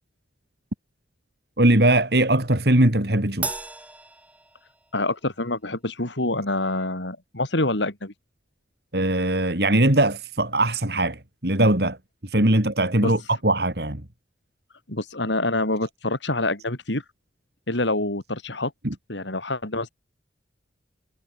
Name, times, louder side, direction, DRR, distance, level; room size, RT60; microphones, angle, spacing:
voice 1, 1.6-3.5 8.9-12.0 12.2-14.0 18.8-18.9, right 1 dB, 60° right, 3.2 m, -20 dB
Crash cymbal, 3.4-5.1, right 2 dB, 10° right, 5.3 m, -34 dB
voice 2, 4.9-8.1 13.0-13.1 14.9-17.0 17.7-18.7 19.1-19.9, left 2 dB, 85° left, 4.6 m, -26 dB
head